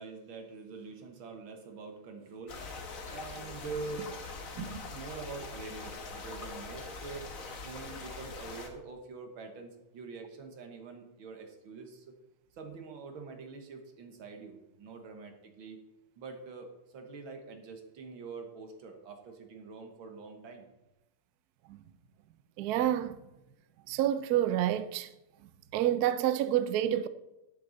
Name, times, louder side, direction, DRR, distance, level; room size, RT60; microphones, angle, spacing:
voice 1, 0.0-2.8 3.1-4.1 4.5-7.3 7.6-12.2 12.5-15.8 16.2-20.7, right 4 dB, 65° right, 2.1 m, -45 dB
sound 1, 2.5-8.7, left 4 dB, 45° left, 1.5 m, -43 dB
voice 2, 22.6-23.2 23.9-25.1 25.7-27.1, right 11 dB, 90° right, 0.8 m, -28 dB
10.0 x 10.0 x 4.0 m
omnidirectional pair, 2.4 m